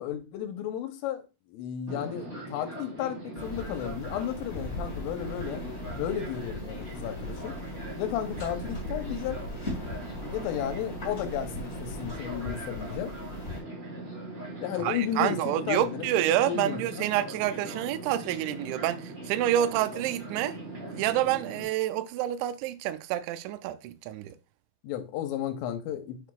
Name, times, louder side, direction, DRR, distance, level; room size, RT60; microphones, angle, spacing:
voice 1, 0.0-5.6 5.9-7.5 8.0-9.4 10.3-13.1 14.6-16.2 16.5-17.1 24.8-26.3, left 10 dB, 85° left, 3.5 m, -33 dB
Fixed-wing aircraft airplane, 1.9-21.6, right 1 dB, 20° right, 2.5 m, -40 dB
sound 1, 3.4-13.6, left 1 dB, 25° left, 1.5 m, -39 dB
voice 2, 14.8-20.6 20.9-24.3, right 12 dB, 85° right, 2.6 m, -28 dB
8.1 x 6.5 x 2.4 m
omnidirectional pair, 5.6 m